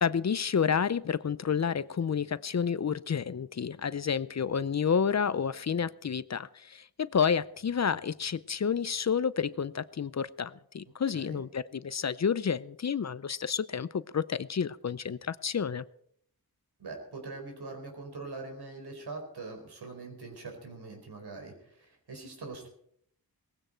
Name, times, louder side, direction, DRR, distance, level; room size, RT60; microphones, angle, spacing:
voice 1, 0.0-15.8, left 7 dB, 45° left, 17 dB, 0.6 m, -30 dB
voice 2, 16.8-22.7, right 3 dB, 85° right, 3 dB, 4.7 m, -43 dB
19.0 x 15.5 x 4.5 m, 0.67 s
wide cardioid pair, 70°, 38 cm